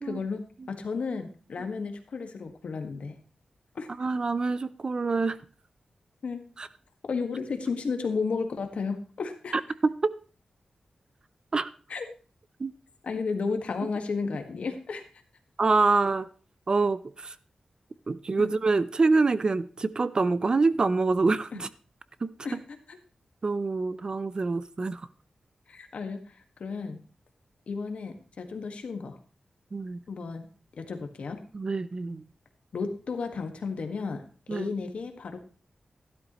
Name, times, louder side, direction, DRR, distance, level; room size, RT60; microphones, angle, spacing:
voice 1, 0.0-3.1 3.7-3.9 6.2-6.4 7.1-9.5 11.9-12.1 13.0-15.0 18.4-18.5 22.4-22.6 22.9-23.0 25.7-27.0 27.7-29.2 30.1-30.5 30.7-31.4 32.7-34.2 34.5-35.4, left 4 dB, 75° left, 1.6 m, -33 dB
voice 2, 4.0-5.4 6.6-6.7 9.8-10.1 11.5-11.7 12.6-12.7 15.6-16.3 16.7-17.3 18.1-21.7 22.2-22.3 23.4-25.0 29.7-30.0 31.5-32.2 34.5-34.7, right 3 dB, 40° right, 0.5 m, -26 dB
13.5 x 12.0 x 3.0 m
wide cardioid pair, 140°, 2 cm